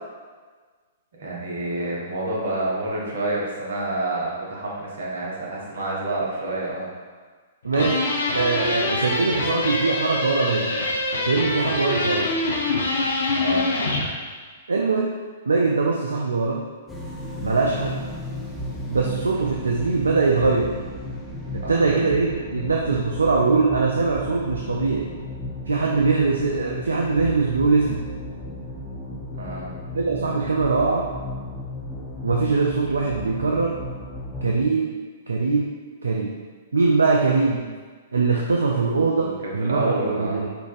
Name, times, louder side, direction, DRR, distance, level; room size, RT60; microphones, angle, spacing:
voice 1, 1.2-6.9 13.3-13.7 21.6-22.1 29.4-29.7 39.2-40.4, right 2 dB, 60° right, -4 dB, 1.0 m, -28 dB
voice 2, 7.6-8.1 8.3-10.7 11.2-12.3 14.7-15.1 15.5-16.7 17.4-18.0 18.9-20.7 21.5-25.1 25.7-28.0 29.9-31.1 32.2-33.8 34.4-35.0 35.3-35.8 36.0-36.3 36.7-37.7 38.1-40.5, right 4 dB, 75° right, -1 dB, 0.3 m, -22 dB
sound 1, 7.7-14.1, left 2 dB, 70° left, 0.6 m, -25 dB
sound 2, 16.9-34.5, left 1 dB, 5° left, 0.5 m, -34 dB
5.0 x 2.4 x 2.4 m, 1.5 s
figure-of-eight pair, 110°, 0 cm